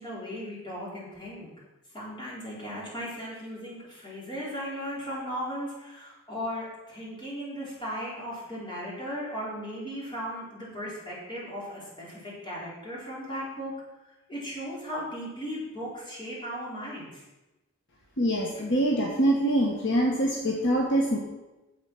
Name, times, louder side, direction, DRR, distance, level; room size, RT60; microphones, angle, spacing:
voice 1, 0.0-1.5 1.9-13.7 14.3-17.2 18.5-18.6, equal, 20° left, -6 dB, 4.2 m, -37 dB
voice 2, 18.2-21.2, right 1 dB, 60° left, 0 dB, 1.4 m, -24 dB
9.8 x 7.2 x 6.1 m, 1.0 s
head